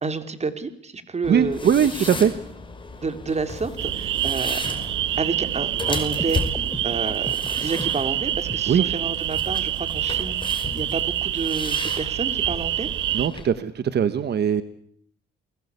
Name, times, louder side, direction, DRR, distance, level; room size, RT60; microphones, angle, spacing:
voice 1, 0.0-2.1 3.0-4.6 5.2-6.4 6.8-12.9, right 4 dB, 35° right, 9 dB, 3.5 m, -30 dB
sound 1, 1.2-13.4, left 3 dB, 25° left, 5.5 m, -35 dB
voice 2, 1.3-2.3 8.7-8.8 13.1-14.6, right 8 dB, 60° right, 12 dB, 1.6 m, -20 dB
sound 2, 3.8-13.3, right 12 dB, 75° right, 1.1 m, -26 dB
sound 3, 6.1-9.1, left 1 dB, 5° left, 4.1 m, -38 dB
29.0 x 21.5 x 8.5 m, 0.66 s
cardioid pair, 90°, 20 cm